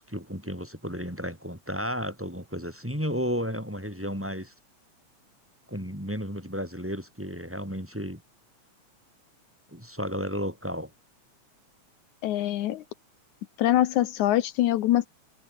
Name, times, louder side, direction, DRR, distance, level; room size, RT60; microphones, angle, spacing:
voice 1, 0.0-4.5 5.7-8.2 9.7-10.9, equal, 5° right, 5.6 m, -33 dB
voice 2, 12.2-12.8 13.6-15.1, left 13 dB, 80° left, 2.4 m, -24 dB
omnidirectional pair, 3.4 m